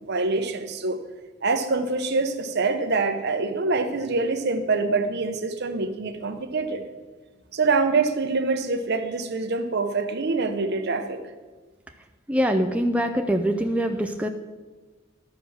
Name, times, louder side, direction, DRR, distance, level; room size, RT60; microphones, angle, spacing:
voice 1, 0.0-1.0 1.4-6.8 7.5-11.2, right 3 dB, 55° right, 8 dB, 0.8 m, -25 dB
voice 2, 12.3-14.3, equal, 5° right, 4 dB, 0.4 m, -23 dB
12.5 x 4.6 x 6.3 m, 1.3 s
head